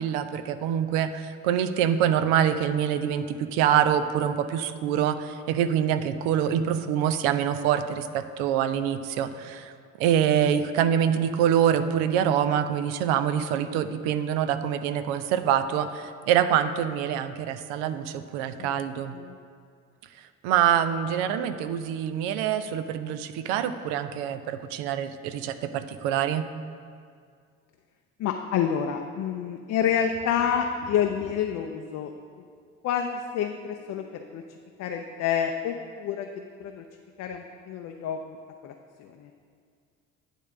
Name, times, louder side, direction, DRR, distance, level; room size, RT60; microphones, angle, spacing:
voice 1, 0.0-9.7 10.0-19.1 20.4-26.5, right 9 dB, 60° right, 11 dB, 0.6 m, -25 dB
voice 2, 28.2-32.1 32.8-34.0 34.3-34.4 34.8-36.8 37.2-38.2 38.6-38.7 39.0-39.3, left 8 dB, 40° left, 4 dB, 0.5 m, -28 dB
Tap, 29.8-31.6 33.6-34.3, left 3 dB, 85° left, 1.1 m, -49 dB
9.1 x 3.6 x 6.9 m, 2.2 s
figure-of-eight pair, 50°, 42 cm